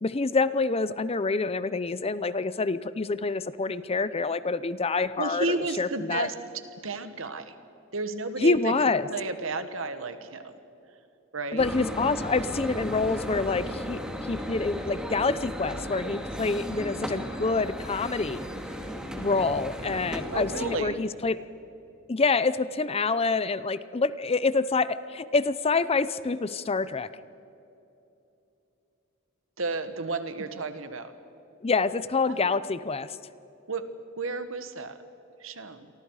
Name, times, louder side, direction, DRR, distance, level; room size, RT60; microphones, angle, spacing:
voice 1, 0.0-6.3 8.4-9.1 11.5-14.0 14.3-18.4 19.2-21.4 22.1-27.1 31.6-33.2, left 3 dB, 30° left, 15 dB, 0.6 m, -27 dB
voice 2, 5.2-6.3 6.8-7.5 7.9-8.7 9.1-10.6 11.3-11.7 20.3-21.0 29.6-31.1 32.3-32.5 33.7-33.8 34.2-34.9 35.4-35.9, right 3 dB, 70° right, 9 dB, 1.6 m, -32 dB
sound 1, 11.6-20.8, equal, 5° right, 2.2 m, -35 dB
29.0 x 24.0 x 4.9 m, 2.8 s
head